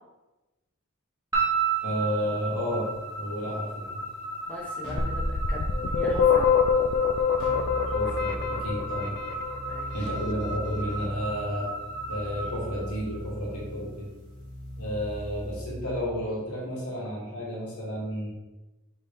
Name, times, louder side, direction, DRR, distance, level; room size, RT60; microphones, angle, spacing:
sound 1, 1.3-13.6, right 4 dB, 15° right, 1.2 m, -34 dB
voice 1, 1.8-2.9 3.2-4.0 7.9-9.2 9.9-11.7 12.1-14.1 14.8-18.3, equal, 80° left, -4 dB, 1.2 m, -31 dB
voice 2, 4.5-5.6 5.9-6.5 9.7-10.1, left 1 dB, 5° left, -5 dB, 0.7 m, -39 dB
Keyboard (musical), 4.8-5.4 7.4-16.3, equal, 20° left, 1.3 m, -39 dB
Moog laughing, 5.0-9.8, left 7 dB, 50° left, 0.3 m, -24 dB
5.1 x 3.0 x 3.5 m, 1.1 s
head